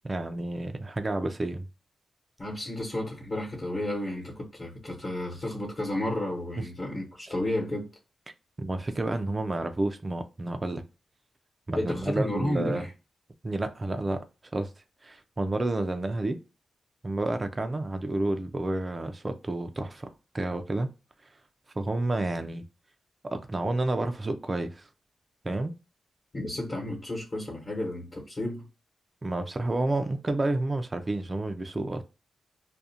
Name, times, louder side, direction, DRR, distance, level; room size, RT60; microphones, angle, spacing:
voice 1, 0.0-1.6 6.6-6.7 8.6-10.8 11.7-12.9 13.4-14.2 14.5-14.7 15.0-16.4 17.0-20.9 21.8-22.6 23.3-24.9 25.4-25.8 29.2-32.0, right 2 dB, 25° right, 0.3 m, -30 dB
voice 2, 2.4-7.9 11.7-12.9 26.3-28.7, left 1 dB, 35° left, 1.0 m, -32 dB
2.4 x 2.1 x 2.7 m
wide cardioid pair, 125°, 0 cm